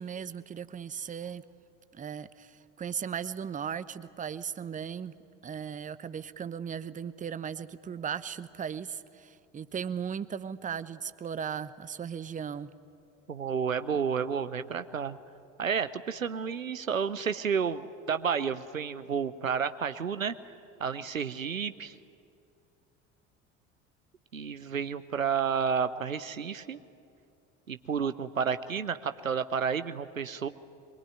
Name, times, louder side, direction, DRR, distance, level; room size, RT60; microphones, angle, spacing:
voice 1, 0.0-1.4 1.9-5.1 5.4-12.7, right 7 dB, 20° right, 14 dB, 0.9 m, -37 dB
voice 2, 13.3-15.2 15.6-20.3 20.8-22.0 24.3-26.8 27.7-30.5, right 6 dB, 85° right, 12 dB, 0.8 m, -31 dB
23.5 x 22.0 x 9.4 m, 2.4 s
figure-of-eight pair, 65°, 39 cm